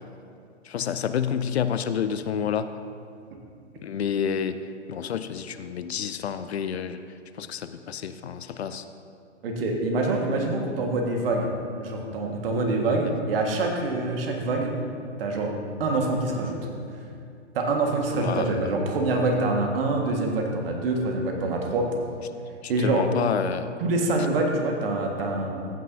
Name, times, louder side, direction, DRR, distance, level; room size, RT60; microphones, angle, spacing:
voice 1, 0.7-2.7 3.8-4.6 4.9-7.0 7.4-8.8 18.2-18.5 22.8-23.7, left 8 dB, 60° left, 11 dB, 0.6 m, -28 dB
voice 2, 9.4-11.5 11.8-14.7 15.2-15.5 15.8-16.6 17.5-21.9 22.7-23.1 23.8-25.7, right 2 dB, 50° right, 1 dB, 1.7 m, -25 dB
15.0 x 9.1 x 2.7 m, 2.5 s
figure-of-eight pair, 115°, 36 cm